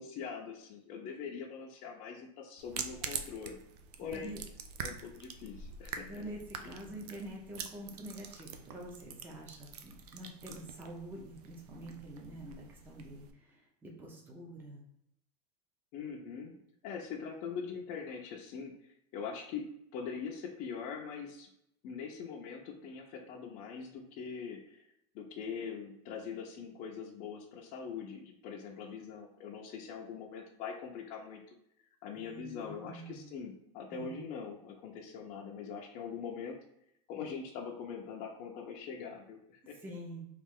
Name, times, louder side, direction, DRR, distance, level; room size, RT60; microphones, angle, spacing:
voice 1, 0.0-3.6 4.0-4.4 4.8-6.1 6.6-6.7 15.9-16.6 16.8-19.6 19.9-21.5 21.8-24.9 25.1-31.4 32.0-36.5 37.1-39.8, left 6 dB, 40° left, 0 dB, 0.5 m, -42 dB
sound 1, 2.6-13.3, right 7 dB, 75° right, 0.5 m, -45 dB
voice 2, 4.0-4.4 6.0-14.8 32.2-33.2 33.9-34.3 39.8-40.2, right 1 dB, 10° right, -1 dB, 0.5 m, -46 dB
3.1 x 2.4 x 3.5 m, 0.77 s
supercardioid pair, 145°, 20 cm